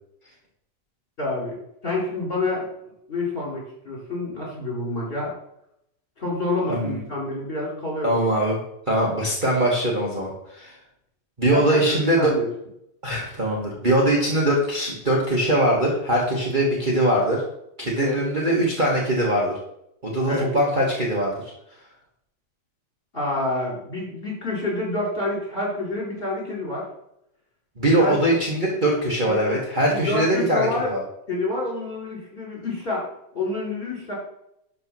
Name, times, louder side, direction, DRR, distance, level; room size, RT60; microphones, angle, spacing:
voice 1, 1.2-1.6 1.8-2.7 3.1-5.3 6.2-8.2 11.5-12.5 17.9-18.2 20.3-20.5 23.1-26.9 28.0-28.2 29.2-29.6 29.9-30.9 31.3-33.1 33.3-34.1, left 2 dB, 30° left, -4 dB, 4.6 m, -28 dB
voice 2, 6.7-7.0 8.0-8.6 8.9-10.8 11.4-12.3 13.0-17.4 17.8-19.5 20.0-21.3 27.8-31.0, right 1 dB, 30° right, -3 dB, 1.7 m, -22 dB
11.5 x 4.1 x 6.2 m, 0.77 s
omnidirectional pair, 1.9 m